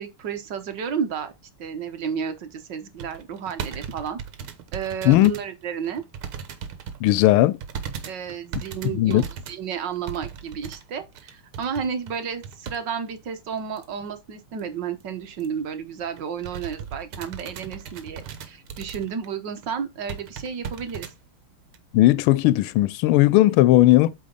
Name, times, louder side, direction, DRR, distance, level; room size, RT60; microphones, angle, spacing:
voice 1, 0.0-1.3 1.6-4.2 4.7-6.0 8.0-21.1, right 7 dB, 60° right, 1.6 m, -32 dB
sound 1, 3.0-5.5 5.8-7.0 7.6-12.8 13.1-13.2 13.8-14.1 14.5-14.6 14.9-15.0 15.4-15.6 16.0-19.3 19.6-19.7 20.1-21.1 21.7-21.8, right 7 dB, 80° right, 1.8 m, -37 dB
voice 2, 7.0-7.6 8.9-9.2 21.9-24.1, left 16 dB, 80° left, 1.4 m, -17 dB
8.4 x 3.9 x 3.9 m
omnidirectional pair, 2.3 m